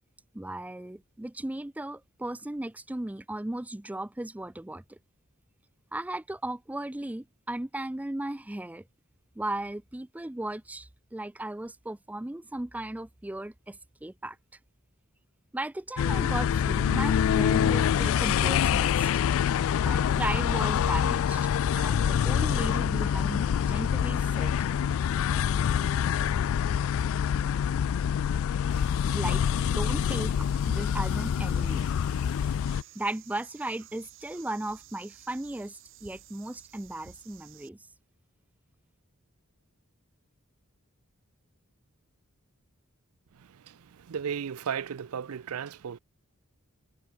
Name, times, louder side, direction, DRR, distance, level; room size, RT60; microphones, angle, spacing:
voice 1, 0.3-5.0 5.9-8.8 9.4-14.4 15.5-19.1 19.8-21.4 21.8-24.5 29.1-31.9 32.9-37.9, right 1 dB, 5° right, 0.4 m, -36 dB
sound 1, 16.0-32.8, left 8 dB, 65° left, 0.3 m, -26 dB
sound 2, 28.7-37.7, right 11 dB, 65° right, 1.4 m, -53 dB
voice 2, 43.7-46.0, right 7 dB, 85° right, 0.5 m, -35 dB
head